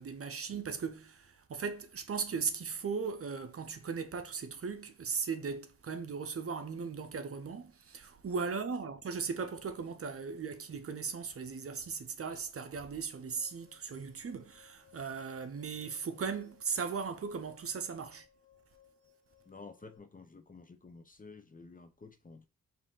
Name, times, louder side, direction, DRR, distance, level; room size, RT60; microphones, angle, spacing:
voice 1, 0.0-18.3, right 5 dB, 45° right, 0.7 m, -38 dB
sound 1, 13.2-20.0, left 9 dB, 45° left, 1.5 m, -66 dB
voice 2, 19.5-22.5, left 4 dB, 25° left, 0.7 m, -52 dB
5.0 x 2.7 x 3.7 m
supercardioid pair, 45°, 31 cm